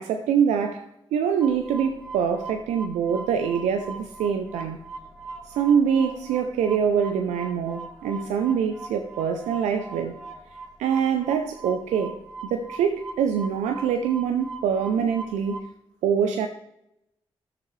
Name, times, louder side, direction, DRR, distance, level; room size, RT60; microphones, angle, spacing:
voice 1, 0.0-4.8 5.5-10.2 10.8-12.2 12.4-15.6 16.0-16.5, right 7 dB, 85° right, 0.5 m, -24 dB
sound 1, 1.4-15.6, right 4 dB, 5° right, 2.5 m, -41 dB
12.5 x 6.8 x 3.2 m
supercardioid pair, 40°, 12 cm